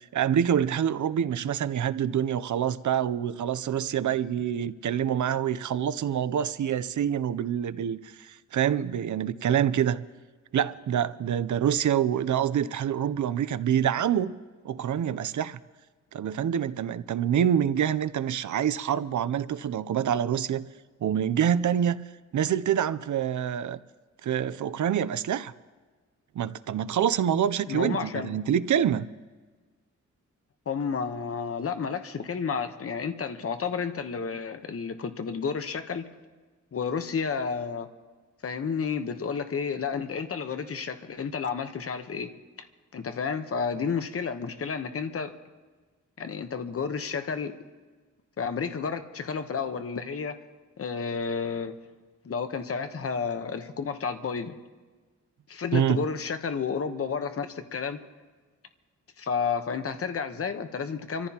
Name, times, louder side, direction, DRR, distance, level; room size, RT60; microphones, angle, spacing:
voice 1, 0.0-10.0 10.5-14.3 14.6-15.6 16.1-20.7 21.0-22.0 22.3-23.8 24.2-25.5 26.4-29.1 55.7-56.0, right 9 dB, 75° right, 15 dB, 0.6 m, -26 dB
voice 2, 27.7-28.3 30.7-36.1 36.7-37.9 38.4-42.3 42.9-45.3 46.2-47.6 48.4-50.4 50.8-51.7 52.2-54.6 55.5-58.0 59.2-61.3, left 5 dB, 50° left, 8 dB, 1.0 m, -31 dB
26.0 x 14.5 x 2.9 m, 1.4 s
wide cardioid pair, 110°, 30 cm